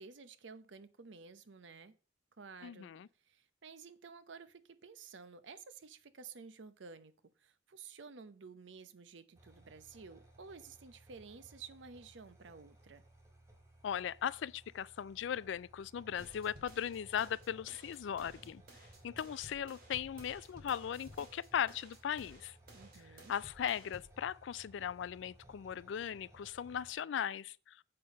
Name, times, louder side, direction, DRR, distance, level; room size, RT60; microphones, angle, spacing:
voice 1, 0.0-2.0 2.4-2.9 3.2-7.1 7.4-13.0 22.7-23.3, right 5 dB, 75° right, 0.7 m, -53 dB
voice 2, 2.6-3.1 13.8-18.6 19.0-22.6 23.3-27.8, left 9 dB, 75° left, 0.3 m, -38 dB
sound 1, 9.4-26.9, right 1 dB, 15° right, 1.9 m, -60 dB
sound 2, 16.2-24.2, right 1 dB, 50° right, 2.7 m, -57 dB
7.7 x 5.8 x 5.2 m
head